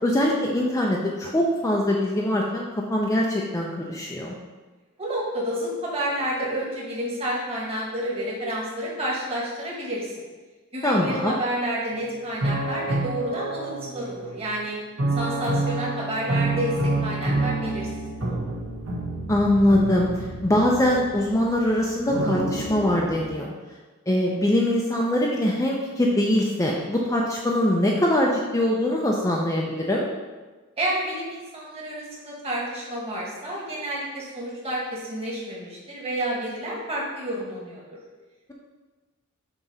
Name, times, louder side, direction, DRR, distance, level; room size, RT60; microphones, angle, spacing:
voice 1, 0.0-4.3 10.8-11.4 19.3-23.5 24.1-30.1, left 1 dB, 15° left, -2 dB, 0.5 m, -23 dB
voice 2, 5.0-10.2 10.7-14.8 15.1-18.1 30.8-37.8, right 1 dB, 30° right, -5 dB, 1.6 m, -30 dB
sound 1, 11.9-12.0 12.4-14.4 15.0-23.3, right 2 dB, 70° right, 1.4 m, -28 dB
7.3 x 3.0 x 5.5 m, 1.3 s
head